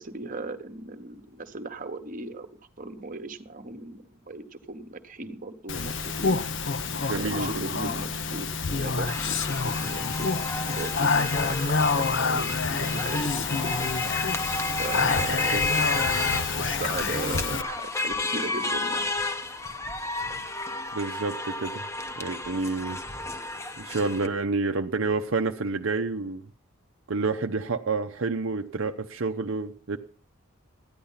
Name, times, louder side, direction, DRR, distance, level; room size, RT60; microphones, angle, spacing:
voice 1, 0.0-2.5 2.8-6.4 7.0-10.3 10.6-13.9 14.8-15.7 16.5-19.0, right 3 dB, 40° right, 1.1 m, -37 dB
Speech, 5.7-17.6, left 4 dB, 55° left, 0.8 m, -27 dB
voice 2, 7.0-7.8 15.5-15.6 20.9-21.9 22.2-23.0 23.8-26.5 27.1-30.0, right 3 dB, 65° right, 0.7 m, -29 dB
sound 1, 9.1-24.3, left 2 dB, 15° left, 0.9 m, -32 dB
14.0 x 10.5 x 5.7 m
head